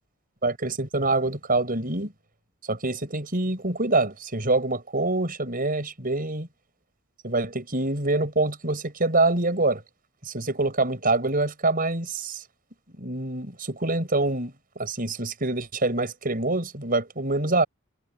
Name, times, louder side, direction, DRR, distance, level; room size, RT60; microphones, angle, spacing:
voice 1, 0.4-2.1 2.7-6.5 7.2-9.8 10.2-12.4 13.0-14.5 14.8-17.6, right 2 dB, 40° right, 5.6 m, -25 dB
head